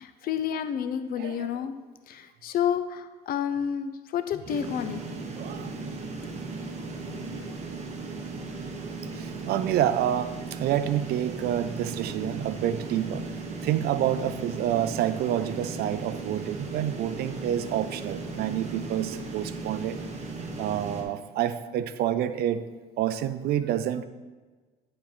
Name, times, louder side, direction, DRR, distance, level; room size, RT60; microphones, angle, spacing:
voice 1, 0.0-1.7 2.1-5.0, left 8 dB, 60° left, 10 dB, 0.6 m, -30 dB
voice 2, 1.2-1.5 5.4-5.7 7.0-7.3 9.1-13.3 13.6-20.0 20.6-22.7 23.0-24.1, right 11 dB, 70° right, 13 dB, 0.5 m, -28 dB
sound 1, 4.5-21.0, right 3 dB, 40° right, 1.1 m, -36 dB
10.0 x 4.4 x 3.8 m, 1.4 s
cardioid pair, 110°, 17 cm